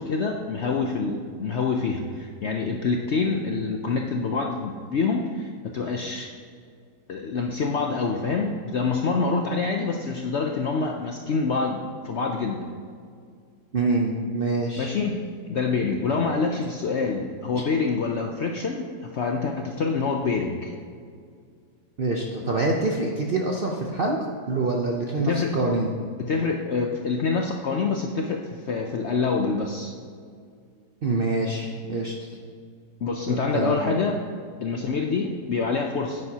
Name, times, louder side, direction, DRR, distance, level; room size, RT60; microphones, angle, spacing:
voice 1, 0.0-6.3 7.1-12.7 14.8-15.2 15.5-20.7 25.2-25.5 26.2-29.9 33.0-34.2 34.6-36.2, left 4 dB, 75° left, 2 dB, 0.6 m, -26 dB
voice 2, 13.7-15.0 17.6-17.7 22.0-24.2 24.5-25.9 31.0-32.3 33.3-33.8, right 2 dB, 65° right, 0 dB, 0.5 m, -25 dB
9.6 x 9.1 x 2.8 m, 2.1 s
omnidirectional pair, 1.8 m